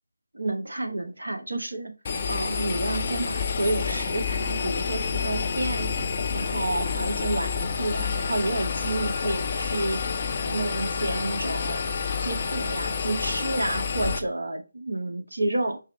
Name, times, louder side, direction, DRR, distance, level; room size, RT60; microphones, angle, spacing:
voice 1, 0.3-1.9 2.3-5.9 6.3-10.0 10.4-11.8 12.2-15.8, right 2 dB, 75° right, 4 dB, 1.0 m, -30 dB
Engine, 2.0-14.2, left 5 dB, 35° left, 0.5 m, -29 dB
4.7 x 2.1 x 4.4 m, 0.29 s
figure-of-eight pair, 160°, 0 cm